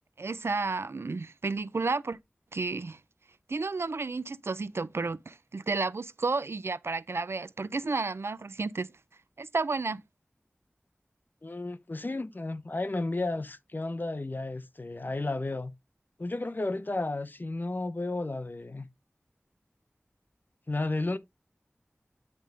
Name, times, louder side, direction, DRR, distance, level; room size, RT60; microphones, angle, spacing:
voice 1, 0.2-2.2 2.5-3.0 3.5-8.9 9.4-10.0, right 3 dB, 85° right, 0.5 m, -32 dB
voice 2, 11.4-15.7 16.2-18.9 20.7-21.2, left 2 dB, 50° left, 0.7 m, -33 dB
10.0 x 3.4 x 3.7 m
wide cardioid pair, 50°, 4 cm